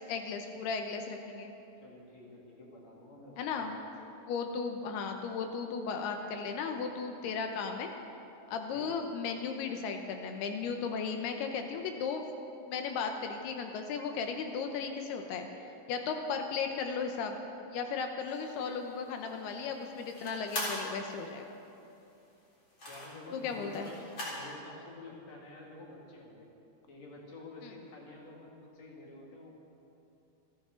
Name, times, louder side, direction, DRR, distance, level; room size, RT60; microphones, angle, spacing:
voice 1, 0.1-1.6 3.4-3.8 4.3-7.9 8.5-12.2 12.7-15.5 15.9-17.4 17.7-21.6 23.3-23.9 27.6-27.7, left 5 dB, 75° left, 5 dB, 2.7 m, -35 dB
voice 2, 1.8-3.9 8.7-8.9 22.9-26.5 26.9-29.5, left 2 dB, 45° left, -3 dB, 3.0 m, -49 dB
sound 1, 18.2-24.5, left 1 dB, 30° left, 4.0 m, -42 dB
27.5 x 12.0 x 3.8 m, 2.8 s
omnidirectional pair, 5.0 m